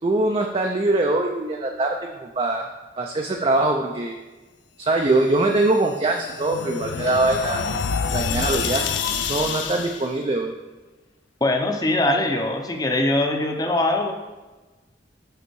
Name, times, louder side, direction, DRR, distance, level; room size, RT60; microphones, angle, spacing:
voice 1, 0.0-2.7 3.0-4.2 4.8-7.6 8.1-8.9 9.3-10.5, right 2 dB, 30° right, 2 dB, 0.4 m, -22 dB
sound 1, 5.6-10.1, left 6 dB, 90° left, 0.5 m, -27 dB
voice 2, 11.4-14.1, left 2 dB, 20° left, 3 dB, 0.7 m, -22 dB
6.7 x 5.6 x 4.6 m, 1.2 s
head